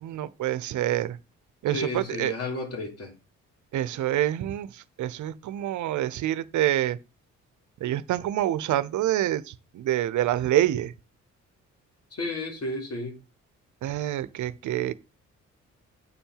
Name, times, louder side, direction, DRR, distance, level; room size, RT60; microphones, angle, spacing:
voice 1, 0.0-1.2 1.6-2.3 3.7-7.0 7.8-10.9 13.8-14.9, right 13 dB, 75° right, 0.8 m, -27 dB
voice 2, 1.7-3.2 12.1-13.2, left 2 dB, 55° left, 3.5 m, -32 dB
9.6 x 4.4 x 5.6 m
cardioid pair, 90°, 30 cm